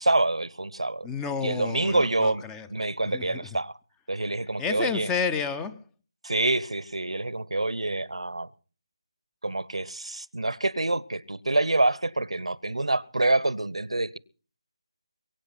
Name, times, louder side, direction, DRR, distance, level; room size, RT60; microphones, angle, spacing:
voice 1, 0.0-1.1 1.4-2.4 2.7-3.8 4.1-5.1 6.2-8.5 9.4-14.2, right 2 dB, 85° right, 1.0 m, -26 dB
voice 2, 1.0-2.7 3.1-3.4 4.6-5.8, left 5 dB, 10° left, 0.6 m, -30 dB
23.0 x 8.7 x 5.8 m
figure-of-eight pair, 160°, 3 cm